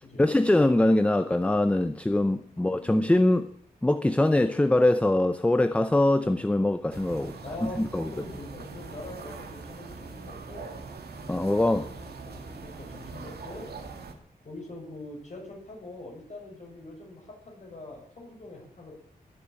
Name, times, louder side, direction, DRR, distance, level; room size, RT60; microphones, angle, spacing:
voice 1, 0.2-3.5 3.8-8.1 11.3-11.9, left 1 dB, 10° left, 0.6 m, -23 dB
voice 2, 2.6-2.9 7.4-7.8 8.1-10.8 11.7-13.7 14.4-18.9, left 2 dB, 45° left, 6.2 m, -43 dB
sound 1, 6.9-14.1, right 4 dB, 85° right, 2.3 m, -42 dB
20.0 x 7.3 x 8.7 m
wide cardioid pair, 160°, 16 cm